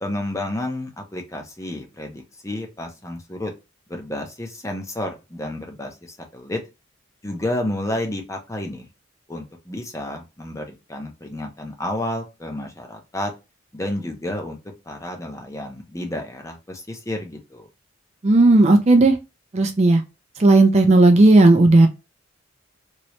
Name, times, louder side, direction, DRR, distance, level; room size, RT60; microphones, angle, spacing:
voice 1, 0.0-3.5 3.9-6.6 7.2-8.9 9.3-13.3 13.7-14.6 14.9-17.7, left 1 dB, 15° left, 3 dB, 0.6 m, -31 dB
voice 2, 18.2-19.2 19.5-20.0 20.4-21.9, right 2 dB, 30° right, 5 dB, 0.4 m, -13 dB
3.2 x 2.9 x 3.0 m, 0.26 s
head